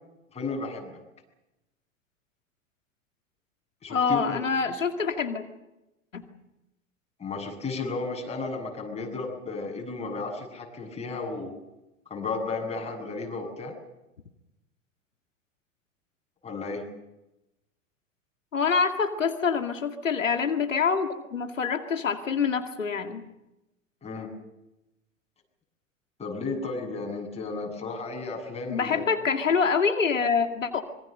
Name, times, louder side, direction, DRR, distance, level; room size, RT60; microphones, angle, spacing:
voice 1, 0.3-0.9 3.8-4.4 7.2-11.5 12.1-13.7 16.4-16.8 24.0-24.3 26.2-29.0, left 3 dB, 15° left, 0 dB, 7.6 m, -33 dB
voice 2, 3.9-5.5 6.1-6.2 18.5-23.2 28.7-30.8, left 5 dB, 75° left, 7 dB, 2.2 m, -26 dB
25.5 x 23.5 x 6.7 m, 0.94 s
figure-of-eight pair, 85°, 39 cm